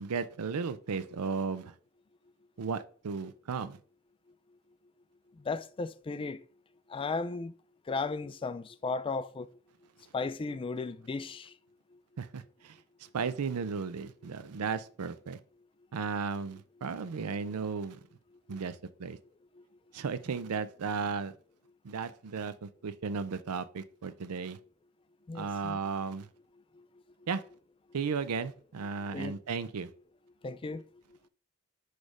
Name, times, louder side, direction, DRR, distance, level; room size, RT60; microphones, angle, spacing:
voice 1, 0.0-1.7 2.6-3.8 12.2-12.8 13.1-15.4 15.9-18.0 18.5-19.2 19.9-21.3 21.8-24.6 25.3-26.3 27.3-27.4 27.9-29.9, right 5 dB, 80° right, 0.5 m, -35 dB
voice 2, 5.4-6.4 6.9-7.5 7.9-9.5 10.1-11.5 18.5-18.6 25.3-25.8 29.1-29.4 30.4-30.8, left 4 dB, 25° left, 0.3 m, -35 dB
6.3 x 3.3 x 4.8 m
head